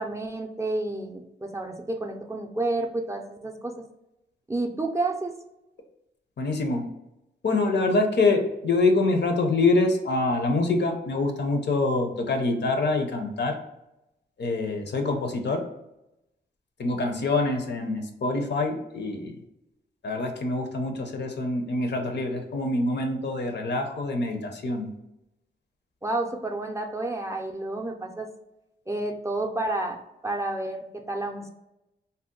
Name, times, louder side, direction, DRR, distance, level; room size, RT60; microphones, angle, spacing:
voice 1, 0.0-3.7 4.5-5.3 26.0-28.3 28.9-30.0 30.2-31.5, right 2 dB, 15° right, 2 dB, 0.4 m, -30 dB
voice 2, 6.4-6.8 7.4-13.6 14.4-15.6 16.8-19.4 20.0-24.9, left 3 dB, 65° left, 4 dB, 0.6 m, -25 dB
2.7 x 2.1 x 3.7 m, 0.89 s
cardioid pair, 60°, 20 cm